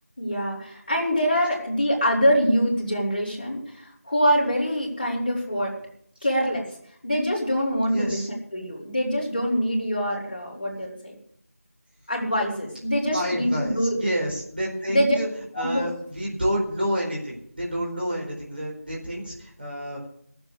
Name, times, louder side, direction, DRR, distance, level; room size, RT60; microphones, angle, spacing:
voice 1, 0.2-5.7 6.2-6.6 7.0-8.2 8.5-11.2 12.1-14.0 14.9-15.2 15.5-15.8, equal, 10° left, -12 dB, 2.4 m, -24 dB
voice 2, 7.9-8.3 13.1-15.3 15.5-20.0, equal, 40° right, -3 dB, 4.5 m, -29 dB
15.0 x 7.0 x 8.1 m, 0.67 s
figure-of-eight pair, 180°, 8 cm